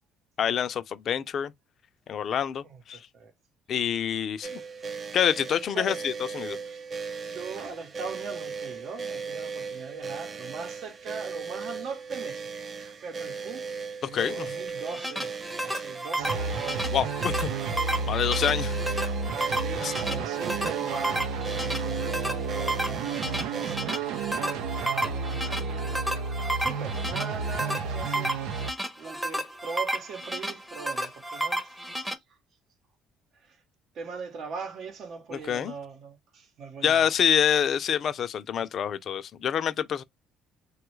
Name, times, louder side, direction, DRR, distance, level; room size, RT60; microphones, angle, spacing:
voice 1, 0.4-1.5 2.1-3.0 3.7-4.6 5.1-6.6 14.1-14.5 16.9-17.5 18.1-18.7 19.8-19.9 35.3-35.7 36.8-40.0, left 9 dB, 50° left, 0.5 m, -26 dB
voice 2, 2.6-3.3 5.7-6.0 6.6-6.9 7.2-12.5 12.8-13.6 14.1-16.8 19.5-24.0 24.3-24.6 24.9-26.0 26.6-28.6 29.0-32.1 33.4-33.6 33.9-37.1, right 5 dB, 55° right, 0.8 m, -40 dB
sound 1, 4.4-23.8, right 5 dB, 35° right, 0.5 m, -37 dB
sound 2, 14.7-32.1, right 1 dB, 5° right, 0.7 m, -32 dB
sound 3, 16.2-28.7, right 4 dB, 85° right, 0.5 m, -32 dB
3.1 x 2.3 x 3.1 m
cardioid pair, 110°, 0 cm